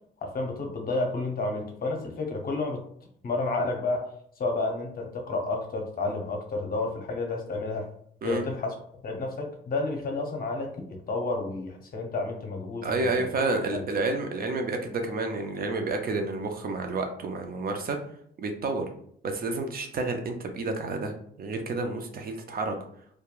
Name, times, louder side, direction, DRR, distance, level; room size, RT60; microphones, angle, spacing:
voice 1, 0.2-2.8 3.2-4.0 4.4-7.9 8.2-8.7 9.0-10.7 11.1-13.3 13.7-13.8, left 3 dB, 50° left, 2 dB, 0.7 m, -30 dB
voice 2, 12.8-18.0 18.4-18.8 19.2-22.8, right 3 dB, 50° right, 4 dB, 0.5 m, -30 dB
2.9 x 2.2 x 2.3 m, 0.67 s
cardioid pair, 90°, 20 cm